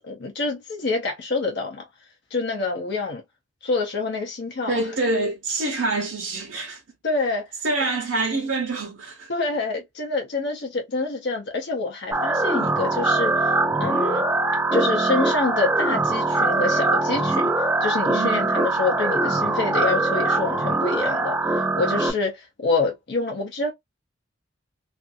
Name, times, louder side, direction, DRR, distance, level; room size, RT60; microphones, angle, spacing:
voice 1, 0.1-1.8 2.3-3.2 3.6-4.7 7.0-7.5 9.3-14.3 14.7-17.5 17.8-23.7, left 3 dB, 55° left, 0.6 m, -27 dB
voice 2, 4.7-6.8 7.6-9.3 18.1-18.4, right 2 dB, 70° right, 0.8 m, -26 dB
sound 1, 12.1-22.1, right 2 dB, 15° right, 0.4 m, -22 dB
2.5 x 2.5 x 2.5 m
head